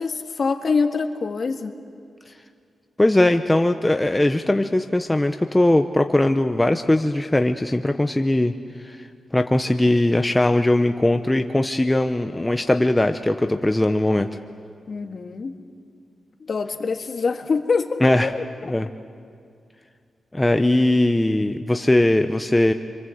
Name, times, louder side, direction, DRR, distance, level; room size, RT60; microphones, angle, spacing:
voice 1, 0.0-1.7 14.9-15.5 16.4-18.7, left 4 dB, 50° left, 5 dB, 1.8 m, -25 dB
voice 2, 3.0-8.5 8.9-9.0 9.3-14.3 18.0-18.3 18.6-18.9 20.3-22.7, left 1 dB, 10° left, 6 dB, 0.8 m, -20 dB
29.5 x 24.5 x 7.9 m, 2.3 s
wide cardioid pair, 125°, 0 cm